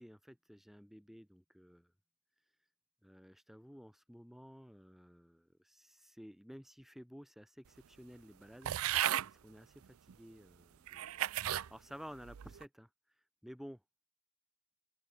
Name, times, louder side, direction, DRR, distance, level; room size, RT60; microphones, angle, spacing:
voice 1, 0.0-1.9 3.0-12.9 13.4-13.8, equal, ahead, 1.8 m, -54 dB
sound 1, 8.6-9.3 10.1-10.2 10.9-11.7 12.2-12.6, right 12 dB, 70° right, 0.4 m, -34 dB
open air
head